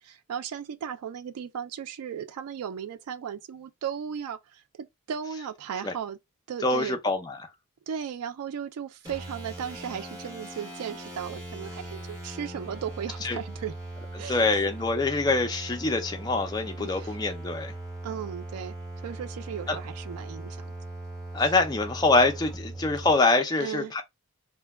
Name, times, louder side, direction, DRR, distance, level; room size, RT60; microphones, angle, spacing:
voice 1, 0.0-6.2 6.5-7.0 7.9-13.7 14.2-14.6 16.8-17.2 18.0-18.7 19.0-20.7 23.6-23.9, right 8 dB, 90° right, 0.3 m, -36 dB
voice 2, 6.6-7.4 13.2-13.4 14.3-17.7 19.7-19.8 21.3-24.0, left 3 dB, 20° left, 0.4 m, -25 dB
sound 1, 9.0-23.2, right 2 dB, 15° right, 1.0 m, -39 dB
2.1 x 2.1 x 3.3 m
head